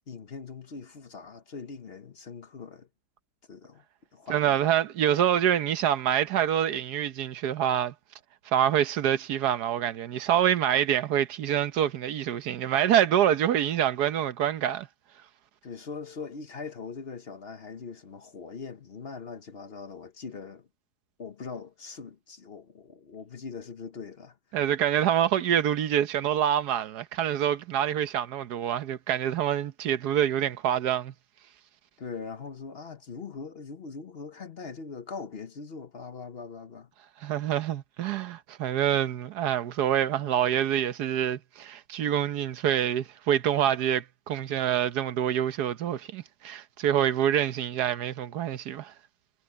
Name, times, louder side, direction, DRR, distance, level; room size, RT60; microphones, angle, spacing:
voice 1, 0.1-2.9 3.5-3.8 4.1-4.6 15.6-20.7 21.2-24.4 32.0-36.9, left 5 dB, 45° left, 1.1 m, -41 dB
voice 2, 4.3-7.9 8.5-14.9 24.5-31.1 37.2-48.9, right 10 dB, 90° right, 1.5 m, -26 dB
omnidirectional pair, 1.7 m